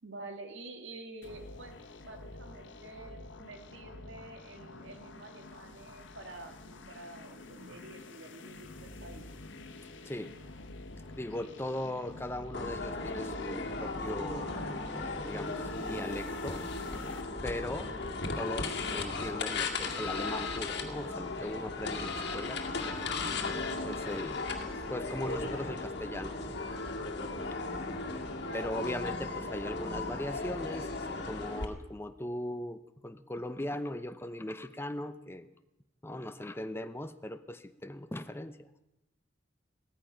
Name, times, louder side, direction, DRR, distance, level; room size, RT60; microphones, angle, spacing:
voice 1, 0.0-9.3 11.4-11.6 17.8-18.2 28.3-28.8, right 2 dB, 75° right, 5 dB, 2.0 m, -48 dB
sound 1, 1.2-17.2, left 2 dB, 75° left, 1.4 m, -48 dB
voice 2, 11.2-14.5 15.2-16.6 17.4-17.9 18.4-23.0 23.8-24.4 24.9-26.6 28.5-35.5 36.0-38.6, left 1 dB, 15° left, 10 dB, 0.7 m, -39 dB
sound 2, 12.5-31.6, left 3 dB, 60° left, 2.0 m, -36 dB
sound 3, 21.4-26.8, equal, 5° right, 2.4 m, -54 dB
17.0 x 14.0 x 5.8 m, 0.93 s
head